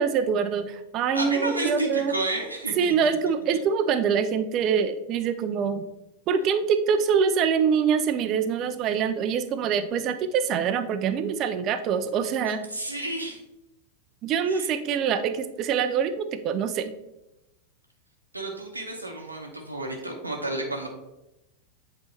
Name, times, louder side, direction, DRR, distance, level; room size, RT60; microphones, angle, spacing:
voice 1, 0.0-2.1 2.8-5.8 6.3-12.7 14.2-16.9, right 6 dB, 35° right, 10 dB, 0.5 m, -25 dB
voice 2, 1.1-2.9 12.5-13.4 14.5-14.7 18.3-20.9, right 1 dB, 85° right, 1 dB, 0.9 m, -31 dB
7.9 x 4.0 x 3.3 m, 0.93 s
figure-of-eight pair, 90°, 0 cm